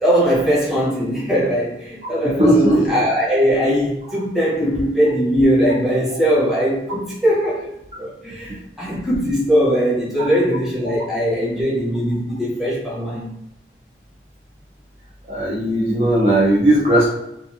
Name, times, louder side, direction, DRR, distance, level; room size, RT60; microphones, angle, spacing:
voice 1, 0.0-13.3, equal, ahead, -8 dB, 0.9 m, -20 dB
voice 2, 2.2-2.9 4.1-4.2 15.3-17.1, right 1 dB, 35° right, -5 dB, 0.5 m, -16 dB
2.4 x 2.4 x 2.6 m, 0.84 s
head